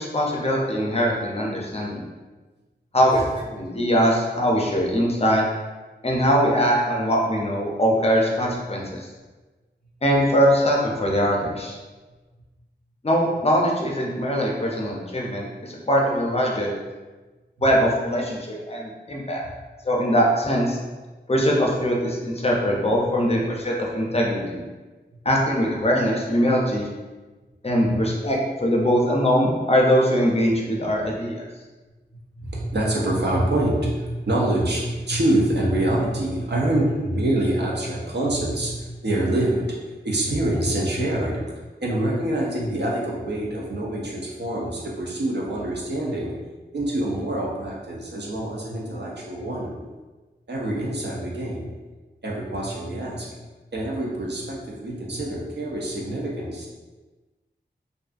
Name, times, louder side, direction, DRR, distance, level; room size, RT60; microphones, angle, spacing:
voice 1, 0.0-2.0 2.9-5.4 6.0-9.1 10.0-11.8 13.0-16.7 17.6-19.4 19.8-20.8 21.3-24.6 25.3-26.9 27.6-31.4, equal, 35° left, -2 dB, 0.5 m, -22 dB
voice 2, 32.4-46.3 46.7-49.8 50.5-51.8 52.2-53.3 53.7-56.7, right 1 dB, 65° right, -3 dB, 0.6 m, -26 dB
2.5 x 2.4 x 2.4 m, 1.2 s
wide cardioid pair, 65°, 18 cm